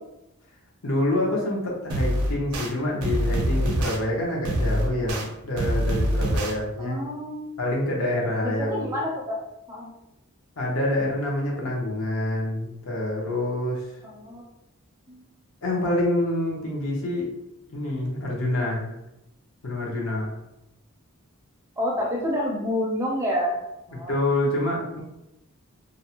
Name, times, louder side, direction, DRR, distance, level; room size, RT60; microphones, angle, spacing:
voice 1, 0.8-7.0 7.6-8.9 10.6-13.9 15.6-17.3 17.7-18.9 19.6-20.4 23.9-25.0, left 1 dB, 65° left, -3 dB, 0.7 m, -26 dB
sound 1, 1.9-2.7 3.0-4.0 4.4-5.2 5.6-6.5, equal, 90° right, 0.5 m, -24 dB
voice 2, 6.8-7.5 8.4-9.4 9.7-9.9 14.1-14.4 15.1-15.3 21.8-23.6 23.9-24.2, equal, 15° right, -3 dB, 0.4 m, -28 dB
2.6 x 2.0 x 2.7 m, 0.88 s
head